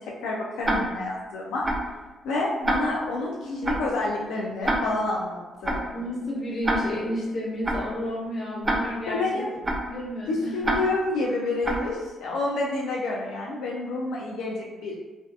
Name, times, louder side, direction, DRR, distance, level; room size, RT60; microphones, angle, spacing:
voice 1, 0.2-1.7 2.2-5.8 9.1-9.5 10.3-14.9, left 2 dB, 85° left, -3 dB, 0.4 m, -28 dB
Tick-tock, 0.6-1.1 1.6-2.0 2.6-3.1 3.6-4.0 4.6-5.1 5.6-6.0 6.6-7.1 7.6-8.0 8.6-9.1 9.6-10.0 10.6-11.1 11.6-12.0, right 1 dB, 25° right, 0.4 m, -27 dB
voice 2, 5.9-9.4 9.9-10.5, left 1 dB, 40° left, -5 dB, 0.9 m, -31 dB
2.5 x 2.3 x 2.3 m, 1.2 s
cardioid pair, 90°, 0 cm